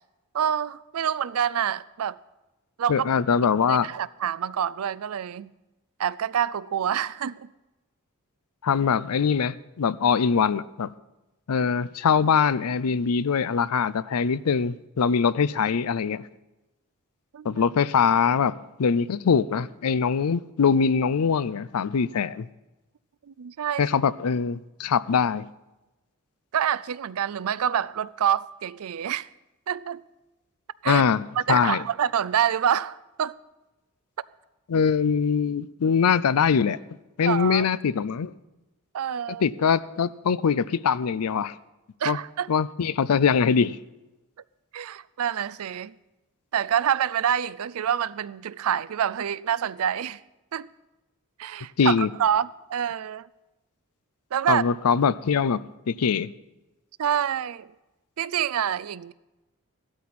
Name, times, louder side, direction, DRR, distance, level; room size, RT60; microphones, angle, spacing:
voice 1, 0.3-2.2 2.8-3.1 3.4-5.5 6.0-7.5 17.3-17.6 23.3-23.9 26.5-29.3 29.7-30.0 30.8-31.0 31.4-33.4 37.2-37.7 38.9-39.4 42.0-42.5 44.7-45.9 46.5-50.2 50.5-50.7 51.4-53.3 54.3-54.6 57.0-57.7 58.2-59.1, right 9 dB, 70° right, 0.4 m, -27 dB
voice 2, 2.9-3.9 8.6-10.9 11.5-16.2 17.4-22.5 23.8-25.5 30.9-31.8 34.7-36.8 37.2-38.3 39.4-41.6 42.1-42.2 42.5-43.8 51.8-52.1 54.5-55.6 55.9-56.3, left 6 dB, 80° left, 0.5 m, -23 dB
15.5 x 12.5 x 4.2 m
head